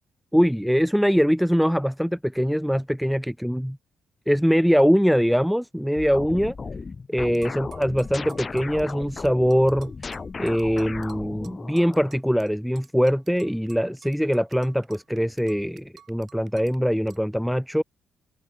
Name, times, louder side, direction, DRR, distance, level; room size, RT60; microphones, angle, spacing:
voice 1, 0.3-3.8 4.3-6.6 7.1-9.9 10.4-17.8, equal, ahead, 0.3 m, -22 dB
sound 1, 6.0-12.2, left 4 dB, 35° left, 2.5 m, -36 dB
sound 2, 7.3-12.5 12.8-16.8 17.1-17.2, right 8 dB, 55° right, 6.7 m, -52 dB
cardioid pair, 90°, 0 cm